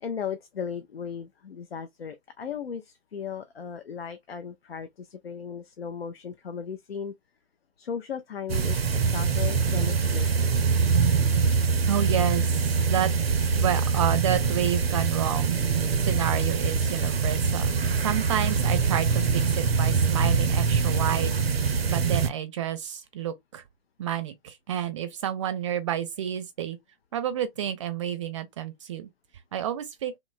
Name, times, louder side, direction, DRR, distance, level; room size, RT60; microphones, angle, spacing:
voice 1, 0.0-7.1 7.8-10.3, left 7 dB, 85° left, 0.5 m, -36 dB
sound 1, 8.5-22.3, right 5 dB, 90° right, 0.5 m, -24 dB
voice 2, 11.9-12.4 12.7-13.1 13.4-15.5 16.0-23.6 24.0-26.8 27.1-29.1 29.5-30.1, right 10 dB, 30° right, 0.5 m, -30 dB
2.9 x 2.2 x 2.4 m
figure-of-eight pair, 130°, 29 cm